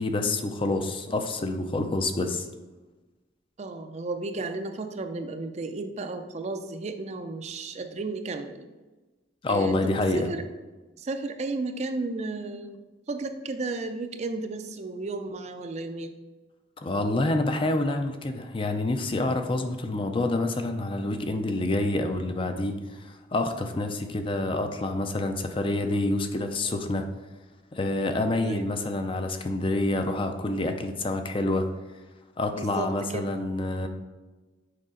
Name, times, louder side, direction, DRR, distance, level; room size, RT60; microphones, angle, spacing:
voice 1, 0.0-2.5 9.4-10.3 16.8-27.1 27.7-31.7 32.4-33.9, left 2 dB, 30° left, 6 dB, 0.5 m, -27 dB
voice 2, 3.6-8.6 9.5-10.4 11.0-12.8 13.1-16.1 28.4-28.7 32.5-33.3, right 3 dB, 35° right, 7 dB, 0.4 m, -33 dB
6.5 x 4.9 x 3.7 m, 1.2 s
head